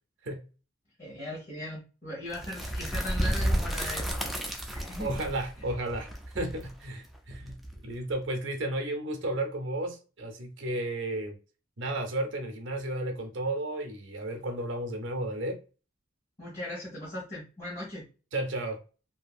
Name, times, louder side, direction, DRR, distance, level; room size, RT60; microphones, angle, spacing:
voice 1, 1.0-4.3 4.7-5.2 16.4-18.0, left 1 dB, 35° left, -4 dB, 1.1 m, -39 dB
sound 1, 2.3-8.1, equal, ahead, 0.3 m, -32 dB
voice 2, 5.0-6.1 6.3-7.5 7.8-11.3 11.8-15.6 18.3-18.8, right 1 dB, 60° right, 4 dB, 0.6 m, -33 dB
2.8 x 2.7 x 2.4 m, 0.34 s
head